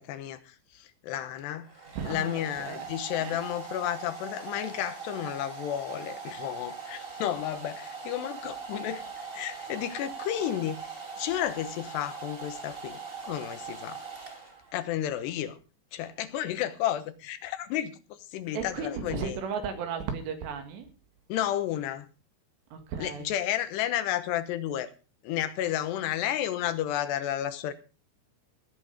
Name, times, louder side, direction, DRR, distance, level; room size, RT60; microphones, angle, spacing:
voice 1, 0.0-1.7 2.0-14.0 14.7-15.6 15.9-18.0 18.3-19.4 21.3-22.1 23.0-24.9 25.2-27.7, left 11 dB, 80° left, 3.2 m, -32 dB
Domestic sounds home sounds, 1.1-14.9, right 5 dB, 25° right, 1.3 m, -41 dB
voice 2, 1.9-2.9 3.2-3.4 18.5-20.9 22.7-23.3, right 6 dB, 80° right, 4.3 m, -35 dB
18.5 x 8.7 x 5.1 m
omnidirectional pair, 4.9 m